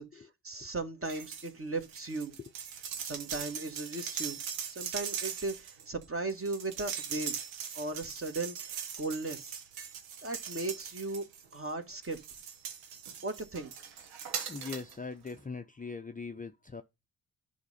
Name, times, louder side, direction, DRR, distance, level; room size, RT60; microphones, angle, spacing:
voice 1, 0.0-2.4 3.0-4.4 4.7-7.3 7.7-9.6 10.2-11.2 11.5-12.2 13.2-13.7, right 2 dB, 30° right, 1.7 m, -37 dB
sound 1, 1.1-1.5 1.8-11.6 12.0-14.9 15.3-15.4, right 7 dB, 80° right, 1.0 m, -40 dB
voice 2, 14.5-16.8, left 4 dB, 20° left, 0.7 m, -41 dB
10.0 x 5.2 x 4.2 m
hypercardioid pair, 40°, 46 cm